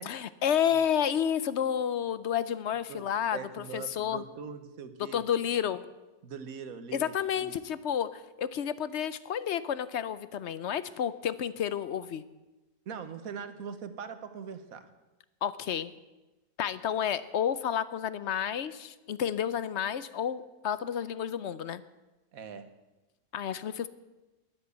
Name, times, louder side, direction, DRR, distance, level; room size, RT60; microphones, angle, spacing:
voice 1, 0.0-4.2 5.1-5.8 6.9-12.2 15.4-15.9 16.6-21.8 23.3-23.9, left 9 dB, 60° left, 15 dB, 0.8 m, -30 dB
voice 2, 3.3-5.2 6.2-7.5 12.9-14.9 22.3-22.7, right 6 dB, 65° right, 10 dB, 1.5 m, -42 dB
21.0 x 7.8 x 8.2 m, 1.1 s
omnidirectional pair, 1.7 m